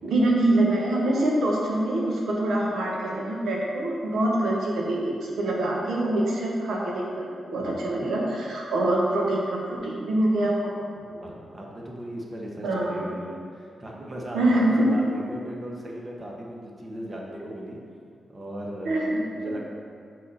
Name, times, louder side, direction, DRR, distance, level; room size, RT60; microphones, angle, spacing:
voice 1, 0.0-10.7 12.6-13.1 14.3-15.1 18.8-19.2, right 1 dB, 90° right, -3 dB, 1.2 m, -24 dB
voice 2, 11.0-17.8 18.3-19.6, right 1 dB, 30° right, -2 dB, 1.2 m, -37 dB
6.1 x 5.3 x 4.1 m, 2.3 s
cardioid pair, 90°, 0 cm